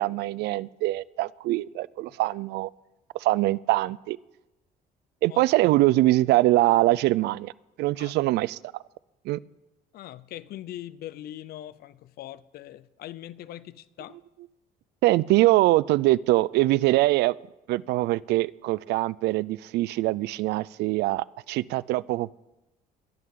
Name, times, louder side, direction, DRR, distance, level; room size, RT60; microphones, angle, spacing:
voice 1, 0.0-2.7 3.1-4.2 5.2-7.5 7.8-8.6 9.3-9.4 15.0-17.3 17.7-22.3, right 18 dB, 80° right, 0.4 m, -23 dB
voice 2, 9.9-14.2, left 13 dB, 65° left, 0.7 m, -41 dB
22.5 x 11.0 x 3.8 m
cardioid pair, 110°, 17 cm